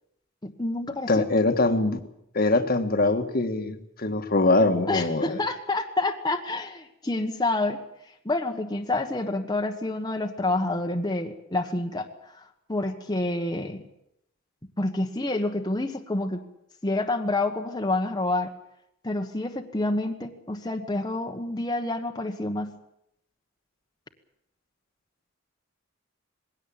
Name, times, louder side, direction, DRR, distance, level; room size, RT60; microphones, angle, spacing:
voice 1, 0.4-1.2 4.9-7.8 8.2-12.1 12.4-13.8 14.8-16.4 16.8-18.5 19.0-22.7, left 2 dB, 20° left, 3 dB, 1.3 m, -28 dB
voice 2, 1.1-2.0 2.3-5.4, left 2 dB, 45° left, 7 dB, 1.5 m, -23 dB
20.5 x 17.0 x 8.8 m, 0.80 s
head